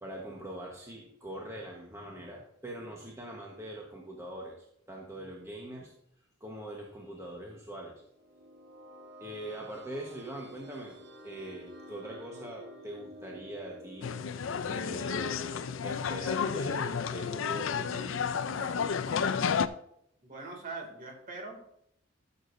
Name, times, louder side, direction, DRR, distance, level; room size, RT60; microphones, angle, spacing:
voice 1, 0.0-5.9 6.4-8.0 9.2-14.1 14.6-19.3, right 1 dB, 15° right, -1 dB, 1.1 m, -43 dB
sound 1, 8.0-18.8, left 1 dB, 70° right, 1.5 m, -51 dB
sound 2, 14.0-19.7, left 6 dB, 80° left, 0.5 m, -31 dB
voice 2, 20.2-21.6, right 3 dB, 45° right, 2 dB, 2.4 m, -42 dB
13.5 x 6.8 x 2.6 m, 0.74 s
head